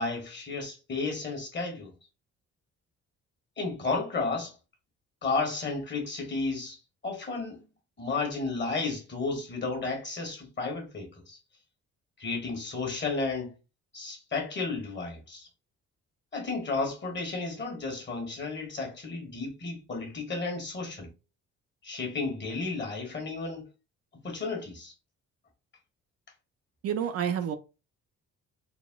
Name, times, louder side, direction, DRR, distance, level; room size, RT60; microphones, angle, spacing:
voice 1, 0.0-1.9 3.6-4.5 5.2-6.8 7.0-7.6 8.0-11.4 12.2-13.5 13.9-15.5 16.3-21.1 21.8-23.7 24.2-24.9, left 3 dB, 35° left, 1.3 m, -33 dB
voice 2, 26.8-27.6, right 8 dB, 55° right, 0.4 m, -29 dB
4.0 x 2.1 x 2.2 m
cardioid pair, 90°, 30 cm